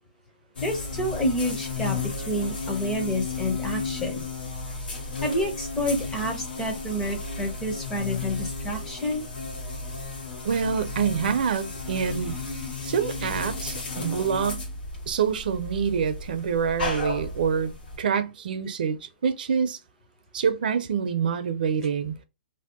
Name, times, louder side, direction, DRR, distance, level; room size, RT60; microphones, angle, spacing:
sound 1, 0.5-18.0, left 3 dB, 70° left, 1.5 m, -33 dB
voice 1, 0.6-2.0 2.3-4.2 5.2-9.3, equal, 10° left, 0.6 m, -28 dB
voice 2, 10.4-12.4 12.8-14.6 15.1-19.8 20.3-22.1, right 7 dB, 60° right, 0.4 m, -26 dB
2.6 x 2.1 x 3.5 m
hypercardioid pair, 160°, 5 cm